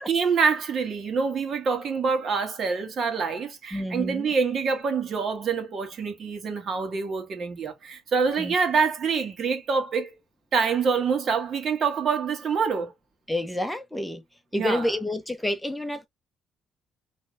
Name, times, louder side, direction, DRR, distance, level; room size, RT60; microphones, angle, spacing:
voice 1, 0.0-10.1 10.5-12.9 14.5-15.0, right 5 dB, 55° right, 1.7 m, -26 dB
voice 2, 3.7-4.3 8.4-8.5 13.3-14.2 14.5-16.1, left 1 dB, 5° left, 0.8 m, -29 dB
5.0 x 3.3 x 2.5 m
cardioid pair, 90°, 0 cm